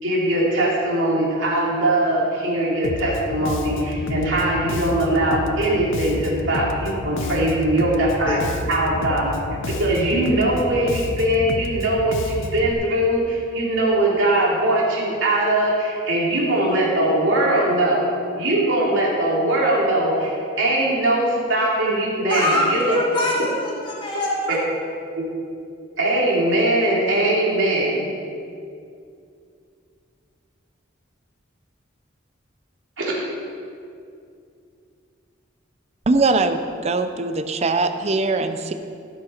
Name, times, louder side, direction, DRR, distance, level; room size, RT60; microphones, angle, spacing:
voice 1, 0.0-8.4 8.7-9.4 9.8-18.1 18.3-23.0 24.5-24.6 25.2-25.3 26.0-28.1 33.0-33.1, right 1 dB, 80° right, -4 dB, 2.8 m, -21 dB
Bass guitar, 2.8-12.7, left 2 dB, 80° left, 0.6 m, -30 dB
voice 2, 22.3-24.6, left 1 dB, 25° left, -5 dB, 2.0 m, -24 dB
voice 3, 36.1-38.7, right 3 dB, 35° right, 9 dB, 0.5 m, -21 dB
15.0 x 6.5 x 4.4 m, 2.4 s
head